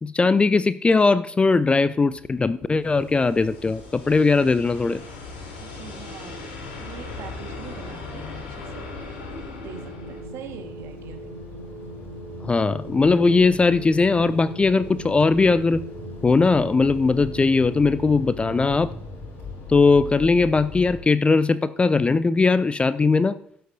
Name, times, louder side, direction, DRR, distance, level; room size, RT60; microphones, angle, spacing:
voice 1, 0.0-5.0 12.4-15.8 16.2-18.9 19.7-23.4, left 4 dB, 20° left, 17 dB, 0.4 m, -19 dB
sound 1, 2.1-10.2, left 3 dB, 70° left, 3.4 m, -39 dB
sound 2, 2.8-21.0, left 3 dB, 45° left, 4.1 m, -41 dB
voice 2, 5.6-8.8 9.6-11.4, right 9 dB, 55° right, 5 dB, 1.5 m, -43 dB
sound 3, 9.6-18.8, right 1 dB, 85° right, 1.4 m, -40 dB
16.5 x 8.1 x 2.6 m, 0.66 s
figure-of-eight pair, 55°, 6 cm